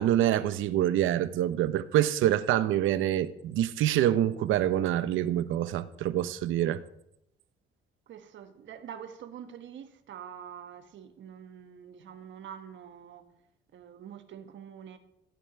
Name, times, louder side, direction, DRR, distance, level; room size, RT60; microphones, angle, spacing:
voice 1, 0.0-6.8, right 12 dB, 85° right, 0.8 m, -26 dB
voice 2, 8.1-13.3 13.7-15.0, right 8 dB, 70° right, 1.6 m, -45 dB
15.5 x 5.4 x 9.0 m
cardioid pair, 90°, 20 cm